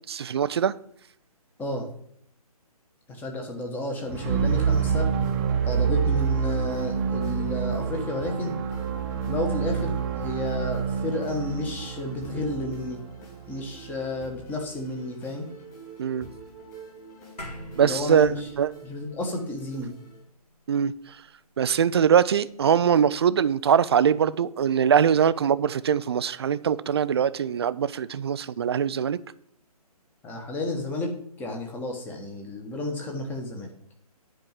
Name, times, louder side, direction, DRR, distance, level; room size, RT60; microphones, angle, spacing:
voice 1, 0.1-0.7 16.0-16.3 17.8-18.3 18.6-18.7 20.7-20.9 21.6-29.2, right 8 dB, 40° right, 0.4 m, -22 dB
voice 2, 3.1-5.1 5.6-8.5 9.3-13.0 13.5-15.5 17.8-18.5 18.8-19.9 30.2-31.1 31.4-33.7, left 1 dB, 10° left, 1.3 m, -31 dB
sound 1, 4.1-14.1, right 7 dB, 25° right, 1.0 m, -27 dB
sound 2, 4.2-20.2, right 3 dB, 30° left, 3.8 m, -47 dB
sound 3, 17.4-22.0, left 1 dB, 80° left, 3.3 m, -45 dB
10.5 x 4.7 x 7.4 m
hypercardioid pair, 150°, 20 cm